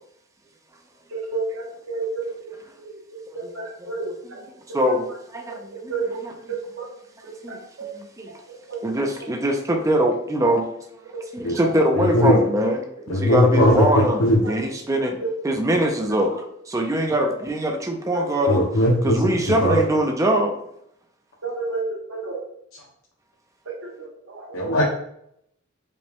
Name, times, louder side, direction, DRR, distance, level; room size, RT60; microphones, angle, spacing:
voice 1, 1.1-2.3 2.8-4.4 4.7-4.8 5.7-6.2 6.5-6.9 7.5-7.9 8.7-8.8 14.4-14.5 15.2-15.3 18.2-18.3 21.4-22.4 23.7-24.4, right 3 dB, 65° right, -1 dB, 1.0 m, -31 dB
voice 2, 3.8-4.4 4.7-5.1 5.3-6.3 7.4-8.3 8.8-10.8 11.3-15.2 15.4-18.6 19.0-20.5, equal, 15° right, 2 dB, 0.5 m, -23 dB
voice 3, 11.9-12.3 13.1-14.4 18.5-19.3 19.6-19.8 24.5-24.8, equal, 80° left, -2 dB, 0.8 m, -19 dB
5.0 x 2.3 x 3.4 m, 0.73 s
head